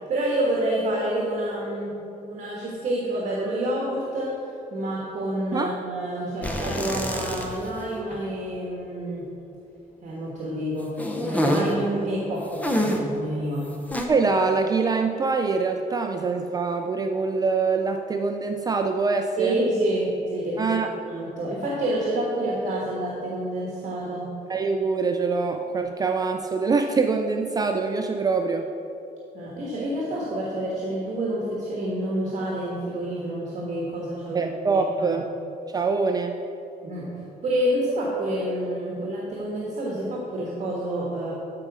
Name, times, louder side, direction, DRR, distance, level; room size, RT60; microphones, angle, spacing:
voice 1, 0.1-2.0 2.3-4.3 4.7-9.3 10.0-13.7 19.4-20.8 21.0-24.3 29.3-34.5 34.7-35.2 36.8-37.1 37.4-41.3, right 1 dB, 55° right, -4 dB, 1.6 m, -28 dB
sound 1, 6.4-7.8 8.1-8.2 11.0-11.8 12.6-13.2 13.9-14.1, equal, 10° left, 0.8 m, -26 dB
voice 2, 14.1-19.6 20.6-20.9 24.5-28.7 34.3-35.2 35.7-36.4, right 4 dB, 25° right, 5 dB, 0.4 m, -24 dB
13.5 x 5.0 x 4.9 m, 2.9 s
cardioid pair, 155°, 15 cm